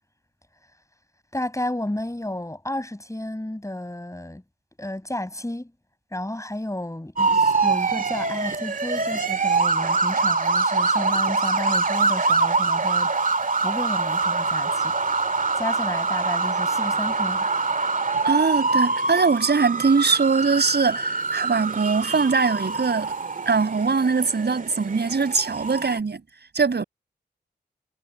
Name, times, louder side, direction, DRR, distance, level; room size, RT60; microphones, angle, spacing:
voice 1, 1.3-4.4 4.8-5.7 6.1-13.1 13.6-14.9 15.6-17.5, left 1 dB, 15° left, 7.9 m, -32 dB
sound 1, 7.2-26.0, right 4 dB, 45° right, 2.0 m, -24 dB
voice 2, 18.2-23.1 23.5-26.2 26.5-26.8, right 4 dB, 60° right, 5.8 m, -22 dB
cardioid pair, 40°, 19 cm